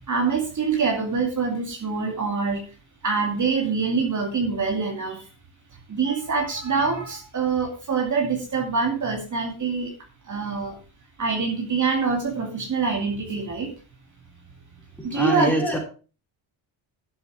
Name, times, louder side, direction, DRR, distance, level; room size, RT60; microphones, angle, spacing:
voice 1, 0.1-2.6 3.0-5.3 5.9-9.9 10.3-10.8 11.2-13.7 15.0-15.5, right 5 dB, 40° right, 1 dB, 2.5 m, -25 dB
voice 2, 15.0-15.8, equal, 5° left, -1 dB, 4.7 m, -24 dB
12.0 x 8.1 x 4.9 m, 0.36 s
cardioid pair, 130°, 47 cm